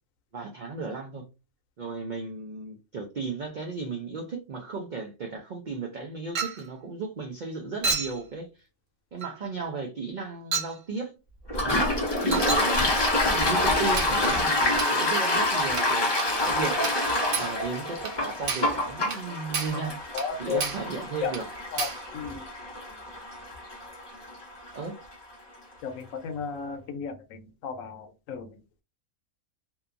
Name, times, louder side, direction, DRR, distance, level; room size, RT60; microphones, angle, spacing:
voice 1, 0.3-1.3 1.8-8.5 9.1-11.1 11.6-16.1 16.4-16.9 17.4-20.0 20.4-21.5 24.7-25.0, right 4 dB, 85° right, 0.4 m, -35 dB
Chink clink, 6.4-6.7 7.8-8.2 9.2-9.4 10.5-10.8 12.3-12.7 14.0-14.2 14.8-15.0 15.8-15.9 16.2-16.4 16.8-17.1 17.3-17.6 18.1-18.2 18.5-18.8 19.1-19.2 19.5-19.8 20.2-20.3 20.6-20.9 21.3-21.5 21.8-22.1, right 4 dB, 65° right, 1.0 m, -31 dB
Toilet flush, 11.5-24.9, left 1 dB, 40° left, 0.3 m, -27 dB
voice 2, 20.1-20.6 21.2-21.3 21.7-22.5 25.8-28.6, left 6 dB, 75° left, 1.0 m, -34 dB
2.7 x 2.3 x 2.4 m
omnidirectional pair, 1.5 m